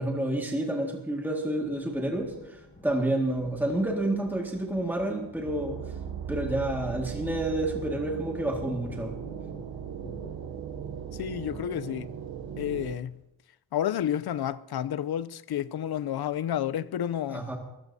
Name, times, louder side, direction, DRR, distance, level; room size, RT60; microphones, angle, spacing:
voice 1, 0.0-5.8 6.3-9.1 17.3-17.6, right 1 dB, 5° right, 1.9 m, -29 dB
Thunder, 0.9-13.2, left 1 dB, 20° left, 4.6 m, -50 dB
sound 1, 5.4-12.9, right 8 dB, 55° right, 0.9 m, -38 dB
voice 2, 11.2-12.1 12.6-13.1 13.7-17.5, left 10 dB, 60° left, 0.6 m, -30 dB
21.5 x 16.5 x 2.8 m
cardioid pair, 85°, 42 cm